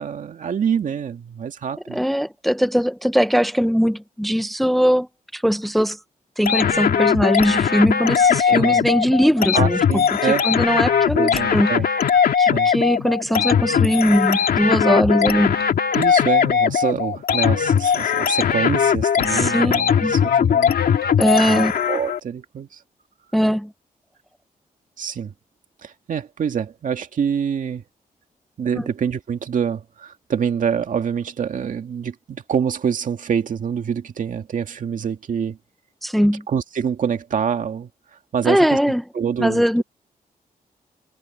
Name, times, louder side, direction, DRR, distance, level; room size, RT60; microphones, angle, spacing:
voice 1, 0.0-2.0 8.5-8.8 9.5-10.5 11.2-11.9 12.5-12.7 15.9-20.7 21.5-22.8 25.0-25.3 25.8-27.8 28.6-35.6 36.5-37.9 38.3-38.8 39.1-39.8, right 7 dB, 60° right, 2.1 m, -26 dB
voice 2, 1.9-5.1 5.3-6.0 6.4-11.7 12.4-15.6 19.2-19.7 20.0-20.5 21.2-21.7 23.3-23.7 28.7-28.8 36.0-36.4 38.4-39.0 39.4-39.8, equal, ahead, 0.8 m, -20 dB
sound 1, 6.5-22.2, left 7 dB, 85° left, 2.2 m, -19 dB
wide cardioid pair, 170°, 15 cm